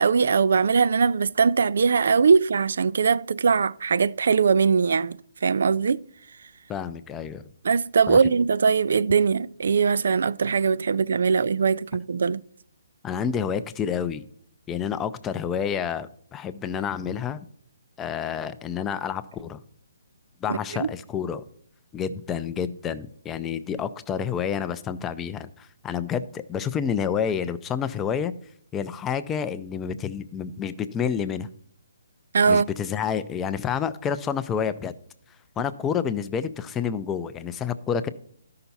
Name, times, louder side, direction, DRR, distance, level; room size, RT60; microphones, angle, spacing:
voice 1, 0.0-6.0 7.6-12.4 20.5-20.9 32.3-32.7, right 5 dB, 65° right, 0.4 m, -21 dB
voice 2, 6.7-7.4 8.1-8.2 13.0-14.2 14.7-17.5 18.0-19.6 20.4-21.4 21.9-28.3 28.7-31.5 32.4-34.9 35.6-38.1, left 7 dB, 10° left, 0.4 m, -29 dB
13.0 x 5.8 x 4.1 m
hypercardioid pair, 165°, 0 cm